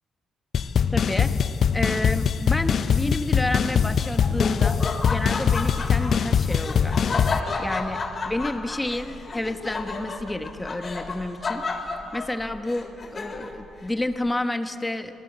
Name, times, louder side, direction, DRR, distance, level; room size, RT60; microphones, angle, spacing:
sound 1, 0.5-7.4, left 7 dB, 55° left, 0.6 m, -22 dB
voice 1, 0.9-1.4 1.7-4.8 5.1-11.6 12.1-15.1, left 1 dB, 15° left, 7 dB, 1.5 m, -30 dB
Laughter, 3.6-13.6, left 3 dB, 40° left, 3.7 m, -32 dB
26.0 x 19.5 x 7.7 m, 2.8 s
cardioid pair, 90°, 0 cm